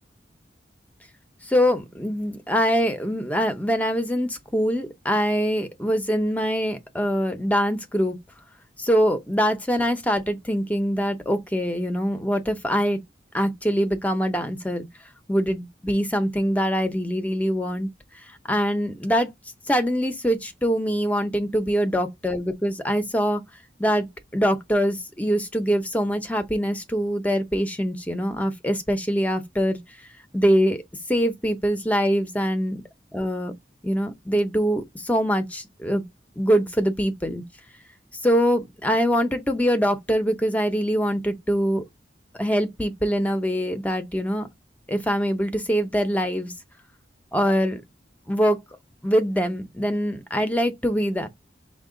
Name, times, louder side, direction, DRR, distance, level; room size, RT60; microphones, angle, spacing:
voice 1, 1.4-8.2 8.8-13.0 13.3-14.9 15.3-17.9 18.5-19.3 19.7-23.4 23.8-24.1 24.3-29.8 30.3-30.8 31.1-32.8 33.1-33.5 33.8-36.0 36.4-37.4 38.2-41.9 42.4-44.5 44.9-46.5 47.3-47.8 48.3-48.6 49.0-51.3, equal, 10° left, 0.6 m, -23 dB
5.8 x 2.2 x 3.7 m
head